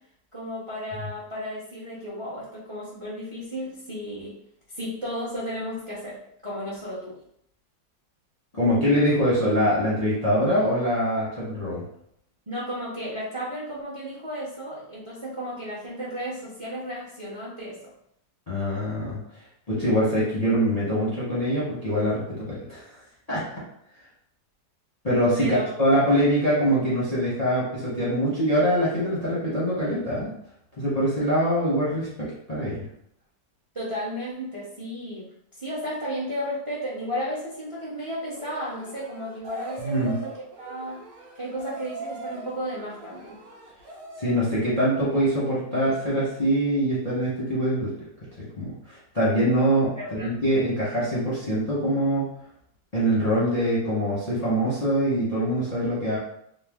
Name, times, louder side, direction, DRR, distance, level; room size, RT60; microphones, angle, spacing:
voice 1, 0.3-4.3 4.7-7.2 12.5-17.8 25.4-25.6 33.7-40.3 40.6-41.0 41.4-43.4 49.9-50.4, equal, 40° right, -7 dB, 0.4 m, -33 dB
voice 2, 8.5-11.8 18.5-19.2 19.7-22.8 23.3-23.4 25.0-30.3 30.8-32.8 39.8-40.1 44.2-47.9 48.4-52.3 52.9-56.2, equal, 35° left, -8 dB, 0.6 m, -24 dB
sound 1, 38.3-44.5, right 2 dB, 60° right, 1.1 m, -41 dB
3.2 x 2.0 x 3.4 m, 0.72 s
omnidirectional pair, 1.9 m